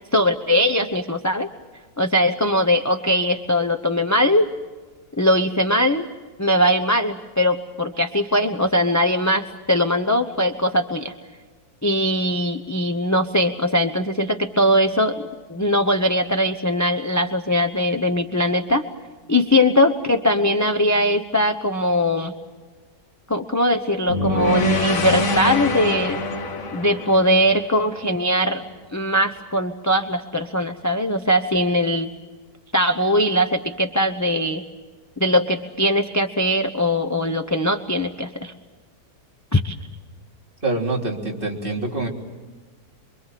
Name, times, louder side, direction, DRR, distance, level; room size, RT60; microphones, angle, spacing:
voice 1, 0.1-1.5 2.0-4.5 5.2-6.1 6.4-11.1 11.8-15.2 15.5-18.8 19.3-22.3 23.3-26.2 26.7-28.6 28.9-32.1 32.7-34.6 35.2-38.5 39.5-39.8, left 1 dB, 15° left, 6 dB, 0.7 m, -20 dB
sound 1, 24.1-28.3, left 1 dB, 55° left, 1.9 m, -25 dB
voice 2, 40.6-42.1, right 2 dB, 30° right, -1 dB, 3.6 m, -25 dB
28.0 x 23.5 x 7.6 m, 1.4 s
omnidirectional pair, 1.8 m